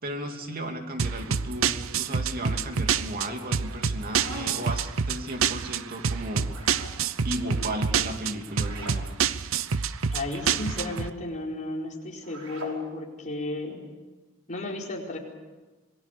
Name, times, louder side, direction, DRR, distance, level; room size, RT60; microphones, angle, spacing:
voice 1, 0.0-6.5 7.2-9.1, right 1 dB, 45° right, 4 dB, 2.8 m, -35 dB
sound 1, 1.0-11.1, right 6 dB, 70° right, 0.7 m, -27 dB
sound 2, 3.7-4.8 6.4-7.0 8.5-9.0 10.5-10.9 12.2-12.8, right 1 dB, 85° right, 5.1 m, -41 dB
voice 2, 10.1-13.8 14.5-15.2, left 2 dB, 35° left, -1 dB, 4.6 m, -33 dB
28.0 x 20.0 x 6.9 m, 1.2 s
head